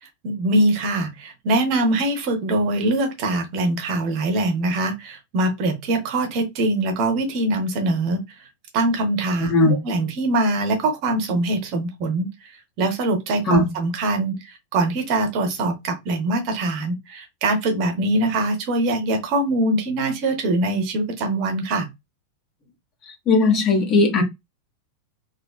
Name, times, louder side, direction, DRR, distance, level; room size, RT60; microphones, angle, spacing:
voice 1, 0.0-8.2 8.7-9.5 9.8-12.5 12.8-21.9, right 2 dB, 45° right, 0.7 m, -23 dB
voice 2, 9.4-9.8 13.5-13.7 23.3-24.2, left 2 dB, 30° left, 0.7 m, -17 dB
2.7 x 2.2 x 2.3 m
figure-of-eight pair, 90°, 0 cm